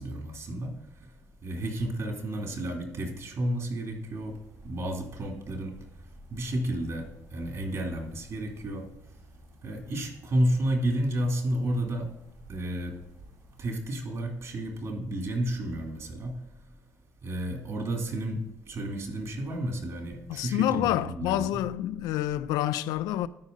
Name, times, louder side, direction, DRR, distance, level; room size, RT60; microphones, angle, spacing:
voice 1, 0.0-4.4 4.6-8.9 9.6-12.1 12.5-13.0 13.6-16.7 17.2-21.6, right 1 dB, 55° right, 2.8 m, -32 dB
sound 1, 4.1-13.7, right 1 dB, 75° right, 2.3 m, -55 dB
voice 2, 20.3-23.3, left 13 dB, 90° left, 0.4 m, -28 dB
12.5 x 5.1 x 3.9 m
cardioid pair, 90°, 6 cm